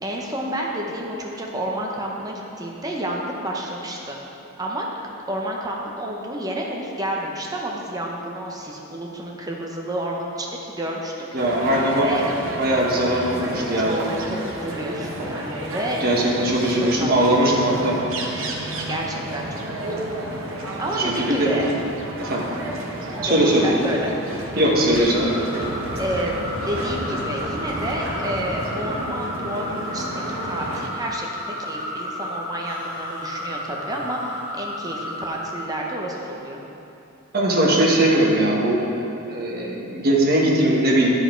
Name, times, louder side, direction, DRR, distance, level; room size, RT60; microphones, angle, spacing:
voice 1, 0.0-4.2 4.6-4.9 5.3-11.2 11.9-12.2 13.3-14.0 14.3-16.5 17.0-17.1 17.4-17.6 18.9-19.8 20.8-21.6 22.4-22.5 23.4-24.1 26.0-26.4 26.7-36.6, right 1 dB, 15° right, -1 dB, 0.8 m, -30 dB
voice 2, 11.3-12.1 12.6-13.9 16.0-17.9 21.3-21.5 22.2-22.4 23.2-23.6 24.6-25.3 37.3-38.8 39.3-41.1, right 1 dB, 45° right, -3 dB, 1.3 m, -20 dB
sound 1, 11.4-30.9, right 1 dB, 65° right, 0.9 m, -32 dB
sound 2, 24.6-29.0 29.9-31.2 31.6-32.2 32.6-34.5, equal, 30° left, 1.5 m, -38 dB
sound 3, 24.9-35.8, left 1 dB, 60° left, 1.9 m, -33 dB
11.5 x 4.8 x 4.4 m, 2.8 s
head